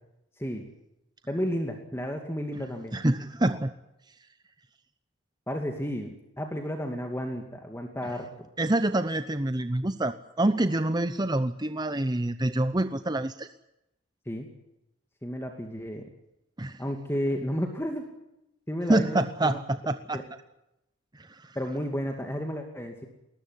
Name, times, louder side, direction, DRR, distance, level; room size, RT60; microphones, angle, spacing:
voice 1, 1.3-3.0 5.5-8.3 14.3-14.5 15.2-16.1 16.8-18.0 18.7-19.6 20.1-20.2 21.5-23.1, equal, 15° left, 4 dB, 2.4 m, -32 dB
voice 2, 2.9-3.7 8.6-13.5 16.6-16.8 18.9-20.2 21.1-21.6, right 1 dB, 20° right, 11 dB, 0.8 m, -26 dB
20.5 x 20.0 x 9.8 m, 0.87 s
head